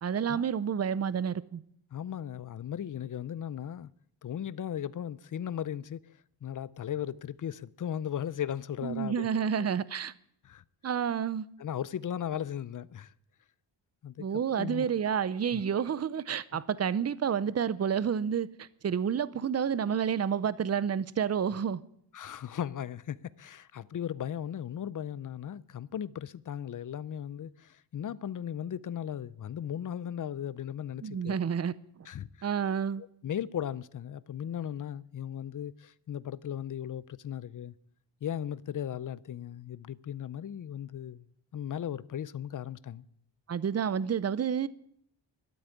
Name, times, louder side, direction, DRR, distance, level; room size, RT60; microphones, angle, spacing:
voice 1, 0.0-1.6 8.8-10.1 10.8-11.5 14.2-21.8 31.0-31.7 32.4-33.0 43.5-44.7, right 7 dB, 35° right, 0.5 m, -29 dB
voice 2, 1.9-3.9 4.2-6.1 6.4-9.7 10.4-10.6 11.6-13.1 14.0-14.3 14.5-14.9 15.5-15.6 22.1-31.4 32.1-32.3 33.0-37.8 38.2-41.3 41.5-43.0, left 9 dB, 45° left, 0.5 m, -37 dB
13.0 x 7.9 x 9.7 m
wide cardioid pair, 145°, 47 cm